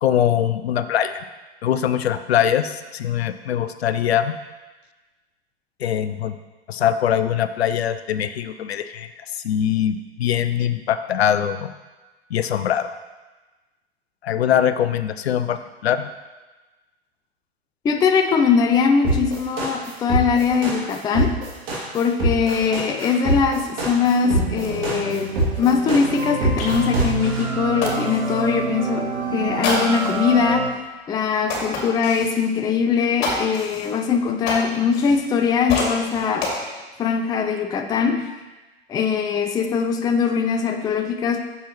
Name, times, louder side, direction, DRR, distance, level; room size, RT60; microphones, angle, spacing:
voice 1, 0.0-1.2 1.6-4.4 5.8-6.3 6.7-9.1 9.4-11.7 12.3-12.9 14.2-16.1, left 9 dB, 70° left, 12 dB, 0.6 m, -22 dB
voice 2, 17.8-21.3 21.9-25.3 25.6-30.7 31.1-36.5 37.0-38.3 38.9-41.4, left 6 dB, 10° left, 6 dB, 0.4 m, -21 dB
sound 1, 19.0-27.4, right 1 dB, 55° right, 2.7 m, -23 dB
sound 2, 23.4-23.5 23.8-28.5 29.6-30.3 30.8-30.9 31.5-32.4 33.2-35.4 35.7-36.6, left 3 dB, 45° left, 2.4 m, -30 dB
sound 3, 24.2-30.7, right 5 dB, 80° right, 1.3 m, -28 dB
9.9 x 6.9 x 3.1 m, 1.2 s
figure-of-eight pair, 90°, 33 cm